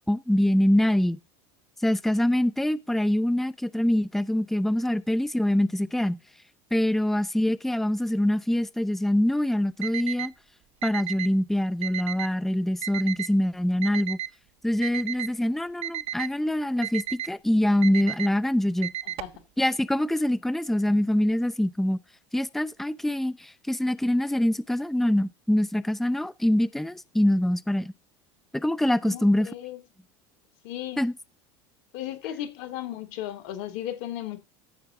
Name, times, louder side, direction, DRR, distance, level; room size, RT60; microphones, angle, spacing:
voice 1, 0.1-1.2 1.8-6.2 6.7-10.3 10.8-14.2 14.6-18.9 19.6-22.0 22.3-27.9 28.5-29.5 31.0-31.1, left 1 dB, ahead, 0.6 m, -24 dB
Alarm, 9.8-10.3 10.8-11.3 11.8-12.3 12.8-13.3 13.8-14.3 14.8-15.3 15.8-16.3 16.8-17.3 17.8-18.3 18.8-19.4, right 10 dB, 45° right, 0.7 m, -33 dB
voice 2, 29.0-29.8 30.6-31.0 31.9-34.4, left 12 dB, 70° left, 2.7 m, -35 dB
14.5 x 7.2 x 3.8 m
supercardioid pair, 100°, 15 cm